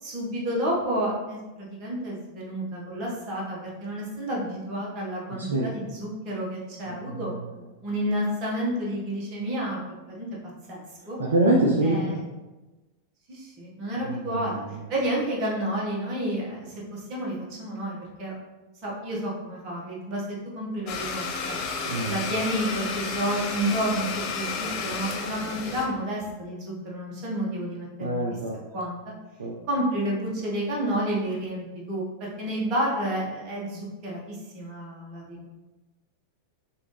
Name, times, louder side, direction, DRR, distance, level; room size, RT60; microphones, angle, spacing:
voice 1, 0.0-7.3 7.8-9.8 10.1-10.3 10.7-11.2 11.8-12.2 13.3-14.5 14.9-18.3 18.8-21.6 22.1-28.2 28.7-29.0 29.7-35.5, right 1 dB, 35° right, -4 dB, 1.5 m, -30 dB
voice 2, 5.3-5.7 6.9-7.2 11.2-12.2 14.0-14.6 21.9-22.2 28.0-28.6 29.4-29.5, right 1 dB, 70° right, -2 dB, 0.5 m, -25 dB
Domestic sounds home sounds, 20.9-25.8, left 4 dB, 40° left, 0.7 m, -32 dB
5.8 x 2.7 x 3.3 m, 1.1 s
figure-of-eight pair, 90°, 0 cm